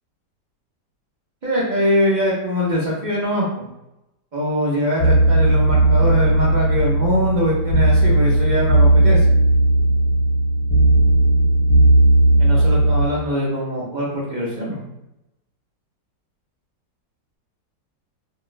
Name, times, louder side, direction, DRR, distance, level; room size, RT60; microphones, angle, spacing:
voice 1, 1.4-3.7 4.3-9.2 12.4-14.9, equal, 60° right, -5 dB, 0.4 m, -22 dB
sound 1, 5.0-13.1, right 1 dB, 70° left, 1.3 m, -16 dB
4.2 x 2.0 x 2.5 m, 0.91 s
omnidirectional pair, 1.9 m